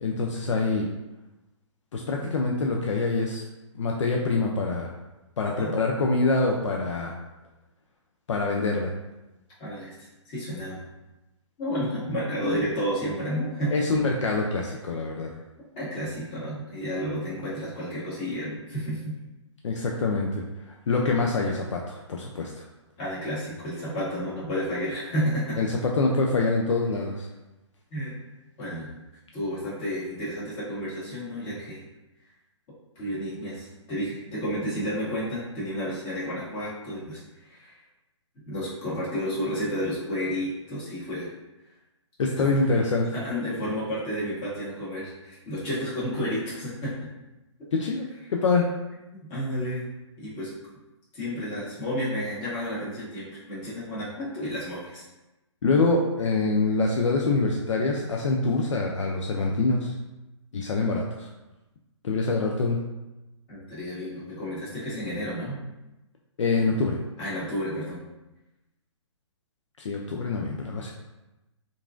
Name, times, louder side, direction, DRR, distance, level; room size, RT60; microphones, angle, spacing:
voice 1, 0.0-0.9 1.9-3.4 3.7-4.9 5.4-7.1 8.3-8.9 13.7-15.3 19.6-22.6 25.6-27.3 42.2-43.1 47.7-48.7 55.6-59.9 60.5-61.3 62.0-62.8 66.4-67.0 69.8-70.9, left 3 dB, 70° left, 0 dB, 0.4 m, -25 dB
voice 2, 9.6-9.9 10.2-10.8 11.6-13.7 15.7-19.1 23.0-25.6 27.9-28.1 28.6-28.9 29.3-31.8 32.9-37.7 38.4-41.3 42.4-42.5 43.1-46.9 49.2-49.9 50.2-50.5 51.1-55.0 63.5-65.6 67.2-68.1, equal, 30° left, -9 dB, 1.5 m, -31 dB
2.8 x 2.5 x 2.4 m, 1.0 s
figure-of-eight pair, 135°, 16 cm